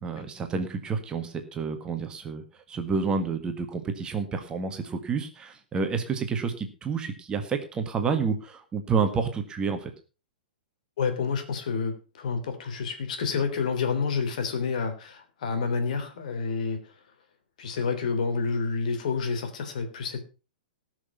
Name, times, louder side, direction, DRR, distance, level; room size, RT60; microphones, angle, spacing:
voice 1, 0.0-9.9, right 5 dB, 15° right, 6 dB, 1.7 m, -29 dB
voice 2, 11.0-16.9 17.6-20.2, left 5 dB, 55° left, 6 dB, 3.3 m, -29 dB
19.0 x 6.4 x 5.5 m, 0.33 s
figure-of-eight pair, 105°, 5 cm